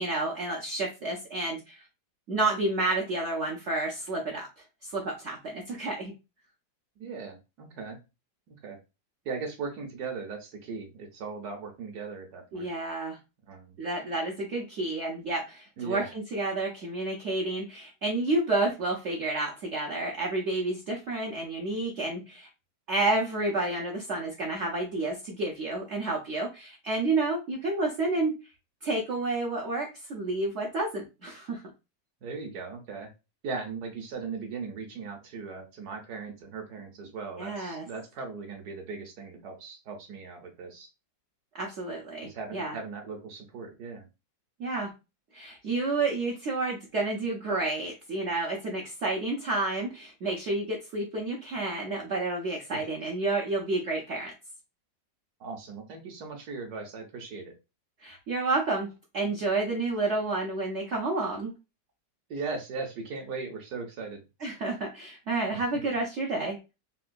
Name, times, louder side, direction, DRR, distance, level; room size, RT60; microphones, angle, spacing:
voice 1, 0.0-1.8 2.3-4.5 4.8-6.1 12.5-13.2 13.8-22.5 22.9-28.3 28.8-31.6 37.4-37.8 41.5-42.8 44.6-44.9 45.3-54.3 58.0-58.9 59.1-61.5 64.4-66.6, right 2 dB, 85° right, -2 dB, 0.6 m, -30 dB
voice 2, 7.0-8.0 8.5-8.8 9.2-12.7 13.5-13.8 15.8-16.1 32.2-33.1 33.4-40.9 42.2-44.1 52.7-52.8 55.4-57.5 62.3-64.2 65.5-65.7, right 4 dB, 65° right, 3 dB, 1.1 m, -38 dB
3.7 x 2.2 x 2.4 m, 0.27 s
omnidirectional pair, 2.0 m